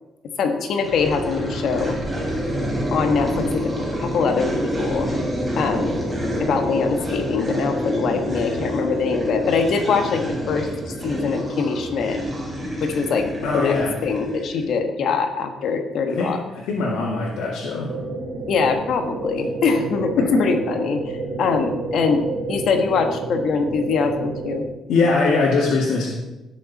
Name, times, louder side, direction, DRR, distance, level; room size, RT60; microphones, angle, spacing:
voice 1, 0.4-2.0 2.9-5.1 5.6-6.0 6.4-10.7 11.0-12.2 12.8-13.3 13.5-13.7 14.0-16.4 18.5-21.1 21.4-24.6, left 5 dB, 60° left, 5 dB, 1.5 m, -23 dB
sound 1, 0.8-14.7, equal, 15° right, 3.2 m, -27 dB
voice 2, 13.4-14.0 16.2-18.0 20.2-20.5 24.9-26.1, left 4 dB, 90° left, -5 dB, 2.4 m, -21 dB
sound 2, 17.9-24.7, right 3 dB, 85° right, 2.6 m, -30 dB
18.0 x 6.7 x 4.2 m, 1.0 s
cardioid pair, 145°, 0 cm